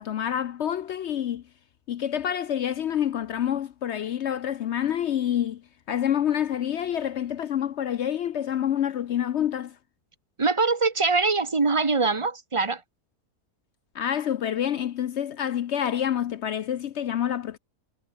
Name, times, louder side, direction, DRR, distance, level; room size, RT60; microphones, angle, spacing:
voice 1, 0.0-1.4 1.9-5.6 5.9-9.7 13.9-17.6, left 10 dB, 65° left, 0.7 m, -27 dB
voice 2, 10.4-12.8, right 4 dB, 20° right, 1.2 m, -23 dB
omnidirectional pair, 1.6 m